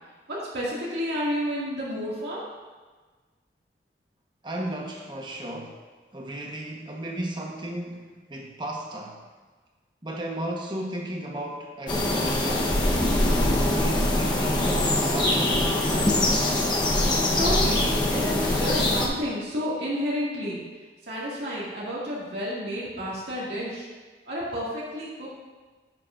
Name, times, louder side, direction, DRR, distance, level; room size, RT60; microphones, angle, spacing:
voice 1, 0.3-2.5 17.4-20.6 21.0-23.9 24.3-25.3, equal, 70° right, -7 dB, 2.1 m, -30 dB
voice 2, 4.4-5.8 6.1-9.2 10.0-12.7 13.7-16.4, right 1 dB, 25° right, 0 dB, 1.1 m, -35 dB
sound 1, 11.9-19.1, left 1 dB, 25° left, 0.9 m, -23 dB
11.0 x 8.5 x 2.5 m, 1.3 s
head